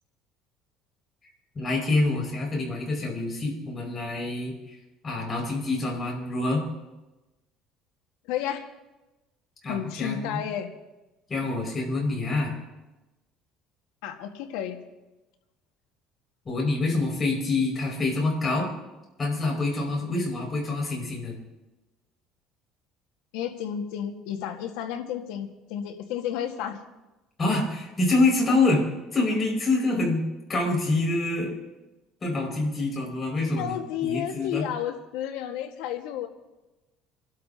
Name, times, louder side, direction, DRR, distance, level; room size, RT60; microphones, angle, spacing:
voice 1, 1.5-4.8 5.0-6.6 9.6-10.4 11.3-12.5 16.4-18.7 19.2-21.3 27.4-28.8 29.1-30.2 30.5-31.6 32.2-34.7, left 2 dB, 25° left, -2 dB, 5.6 m, -26 dB
voice 2, 8.3-8.7 9.7-10.7 14.0-14.8 23.3-26.8 33.5-36.3, left 9 dB, 90° left, 5 dB, 1.6 m, -32 dB
27.5 x 12.5 x 2.8 m, 1.1 s
cardioid pair, 140°, 0 cm